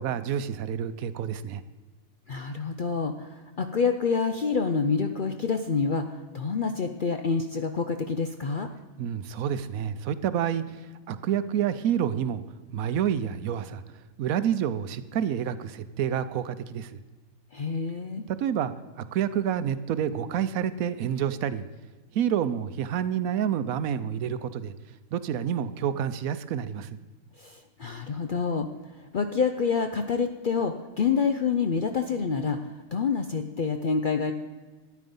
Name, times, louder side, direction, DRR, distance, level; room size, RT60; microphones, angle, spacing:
voice 1, 0.0-1.6 9.0-12.4 12.7-13.8 14.2-17.0 18.3-18.7 19.0-21.6 22.1-24.7 25.1-26.9, right 9 dB, 75° right, 13 dB, 1.1 m, -28 dB
voice 2, 2.3-8.7 17.5-18.2 27.4-34.3, left 5 dB, 60° left, 7 dB, 0.5 m, -27 dB
13.0 x 9.4 x 5.3 m, 1.2 s
omnidirectional pair, 1.5 m